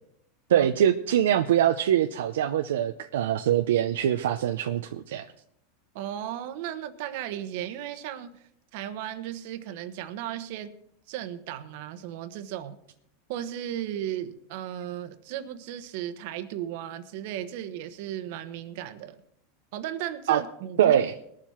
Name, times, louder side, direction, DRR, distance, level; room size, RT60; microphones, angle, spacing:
voice 1, 0.5-5.2 20.3-20.4 20.8-21.1, right 10 dB, 85° right, 6 dB, 0.6 m, -23 dB
voice 2, 5.9-8.3 8.7-10.7 11.1-12.8 13.3-19.2 19.7-21.0, right 11 dB, 65° right, 10 dB, 1.2 m, -35 dB
20.5 x 7.5 x 4.4 m, 0.73 s
supercardioid pair, 125°, 0 cm